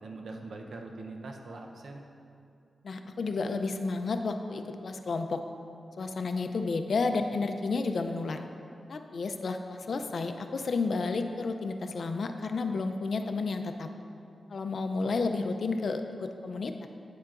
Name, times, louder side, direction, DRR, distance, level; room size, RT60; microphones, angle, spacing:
voice 1, 0.0-2.0, right 2 dB, 75° right, 3 dB, 0.7 m, -42 dB
voice 2, 2.8-5.4 6.0-8.5 8.9-13.9 14.5-16.9, left 3 dB, 65° left, 7 dB, 0.4 m, -31 dB
9.2 x 7.2 x 2.5 m, 2.6 s
cardioid pair, 55°, 0 cm